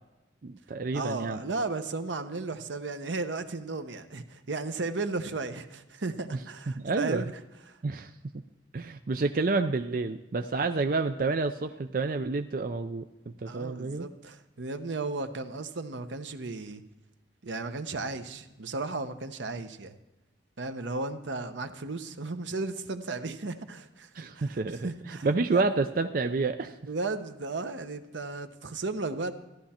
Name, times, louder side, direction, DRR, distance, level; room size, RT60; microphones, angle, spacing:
voice 1, 0.4-1.4 6.7-7.2 7.8-8.4 8.7-13.1 13.4-14.1 24.1-26.8, right 3 dB, 50° right, 7 dB, 0.4 m, -29 dB
voice 2, 0.9-7.3 7.7-7.8 13.5-16.8 17.4-20.0 20.6-25.3 25.5-25.6 26.9-29.3, right 3 dB, 80° right, 9 dB, 0.9 m, -35 dB
14.0 x 11.5 x 4.3 m, 1.0 s
head